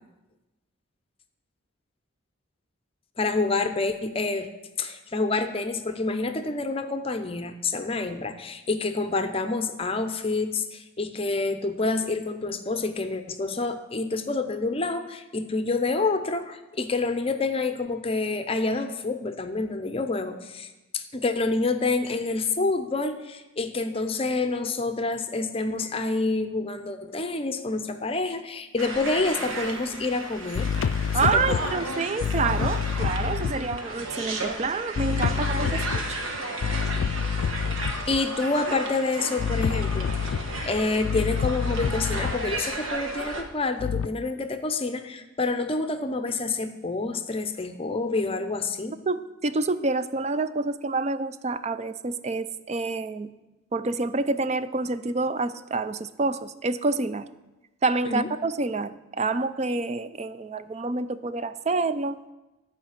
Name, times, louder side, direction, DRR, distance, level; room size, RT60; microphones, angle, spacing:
voice 1, 3.2-4.5 4.8-20.7 20.9-30.7 31.2-31.7 38.1-48.9 58.0-58.3, left 3 dB, 25° left, 8 dB, 0.6 m, -28 dB
sound 1, 28.8-43.4, right 2 dB, 70° right, 1.4 m, -34 dB
sound 2, 29.5-29.7 30.5-34.0 34.9-38.3 39.4-42.6 43.8-44.1, left 7 dB, 65° left, 0.3 m, -28 dB
voice 2, 31.1-36.2 49.1-53.3 53.7-57.3 57.8-62.2, right 3 dB, 30° right, 13 dB, 0.4 m, -28 dB
12.0 x 5.1 x 7.3 m, 1.1 s
head